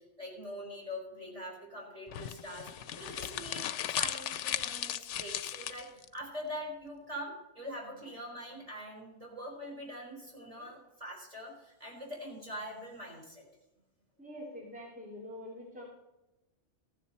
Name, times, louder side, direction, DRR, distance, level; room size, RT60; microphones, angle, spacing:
voice 1, 0.0-13.4, equal, 30° right, -2 dB, 4.3 m, -43 dB
sound 1, 2.1-6.1, left 10 dB, 90° left, 0.9 m, -36 dB
voice 2, 14.2-15.9, left 1 dB, 5° right, -4 dB, 2.8 m, -45 dB
14.5 x 10.0 x 4.2 m, 0.98 s
omnidirectional pair, 1.2 m